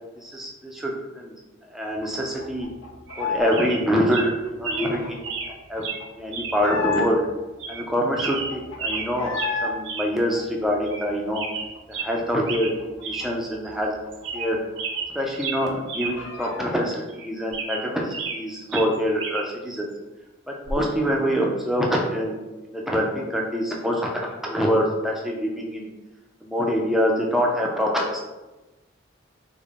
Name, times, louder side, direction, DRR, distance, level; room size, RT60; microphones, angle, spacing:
voice 1, 0.2-1.3 1.7-2.7 3.2-5.2 5.7-5.8 6.2-7.2 7.7-11.4 11.9-13.9 14.3-14.6 15.1-19.9 20.5-25.9 26.4-28.2, equal, ahead, -1 dB, 0.4 m, -25 dB
sound 1, 2.0-3.6 3.9-7.4 7.8-7.9 8.1-9.7 10.1-11.8 12.1-12.2 12.5-15.0 15.2-15.3 15.7-16.8, left 4 dB, 85° left, 0.5 m, -33 dB
sound 2, 3.1-3.2 3.5-3.8 4.1-4.3 4.6-4.9 5.2-5.5 5.8-6.0 6.3-6.6 6.9-7.0 7.6-7.9 8.2-9.1 9.3-9.6 9.8-10.1 10.4-10.5 10.8-11.1 11.3-12.1 12.5-12.7 13.0-13.3 13.6-13.7 14.1-14.5 14.8-16.1 16.4-16.5 17.1-18.4 18.7-19.5 20.7-20.9, right 4 dB, 65° right, 0.5 m, -31 dB
3.7 x 2.1 x 3.4 m, 1.1 s
head